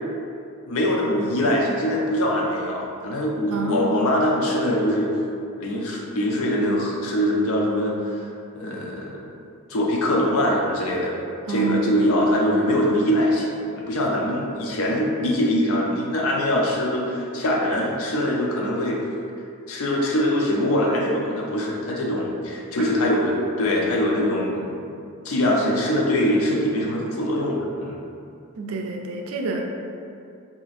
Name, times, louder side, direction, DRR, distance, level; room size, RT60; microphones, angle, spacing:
voice 1, 0.7-5.1 5.6-8.3 8.6-9.3 9.7-11.2 11.5-19.0 19.7-24.8 25.2-28.0, left 1 dB, 75° left, -2 dB, 0.6 m, -23 dB
voice 2, 3.5-4.0 11.5-12.1 28.6-29.6, right 3 dB, 70° right, 2 dB, 0.4 m, -28 dB
2.9 x 2.5 x 4.0 m, 2.5 s
head